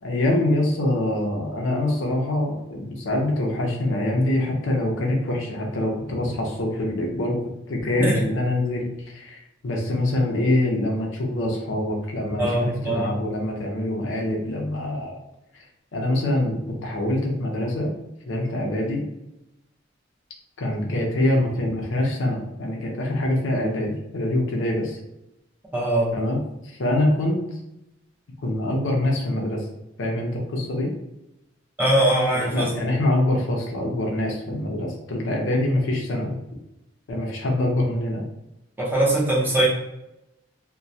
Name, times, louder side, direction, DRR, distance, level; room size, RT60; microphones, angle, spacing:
voice 1, 0.0-7.4 7.7-15.2 15.5-15.6 15.9-17.9 18.3-19.1 20.6-25.0 26.1-27.4 28.4-29.7 30.0-30.9 32.3-36.4 37.1-38.2, left 1 dB, 90° left, 0 dB, 0.6 m, -25 dB
voice 2, 12.4-13.2 25.7-26.1 31.8-32.7 38.8-39.7, right 1 dB, 10° right, -6 dB, 0.7 m, -21 dB
2.2 x 2.1 x 2.6 m, 0.89 s
head